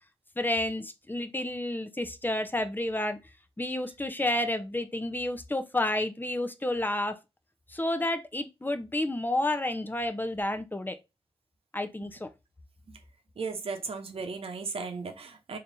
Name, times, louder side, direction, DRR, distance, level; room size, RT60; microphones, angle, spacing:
voice 1, 0.4-3.2 3.6-7.2 7.7-11.0 11.7-12.3, left 1 dB, 20° left, 0.7 m, -30 dB
voice 2, 13.4-15.6, right 4 dB, 75° right, 0.8 m, -36 dB
3.3 x 2.8 x 3.9 m
cardioid pair, 50°, 10 cm